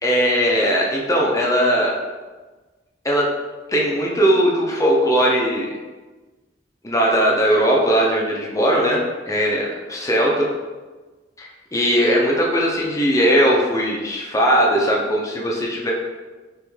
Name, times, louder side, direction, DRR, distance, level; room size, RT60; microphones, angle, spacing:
voice 1, 0.0-1.9 3.0-3.3 3.7-5.7 6.8-10.5 11.4-15.9, equal, 20° left, -2 dB, 0.5 m, -19 dB
3.1 x 3.0 x 3.4 m, 1.3 s
head